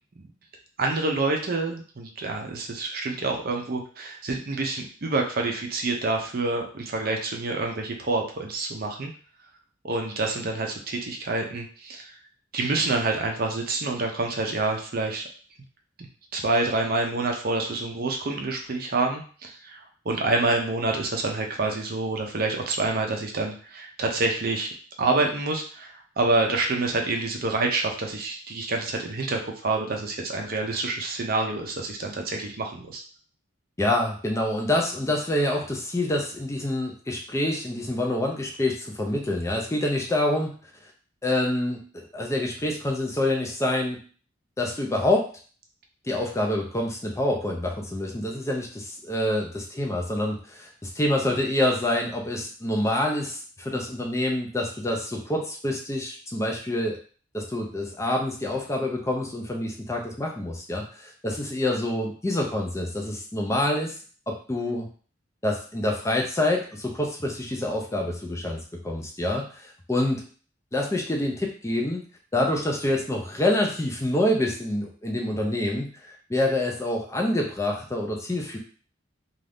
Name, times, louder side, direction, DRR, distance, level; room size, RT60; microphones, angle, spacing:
voice 1, 0.8-9.1 9.8-12.2 12.5-15.2 16.0-16.1 16.3-24.7 25.0-33.0, right 2 dB, 50° right, 2 dB, 0.5 m, -27 dB
voice 2, 33.8-40.5 41.2-44.0 44.6-45.3 46.0-57.0 57.3-64.0 64.3-64.9 65.4-70.2 70.7-72.0 72.3-78.6, left 1 dB, 15° left, 1 dB, 0.4 m, -27 dB
2.6 x 2.4 x 3.4 m, 0.41 s
head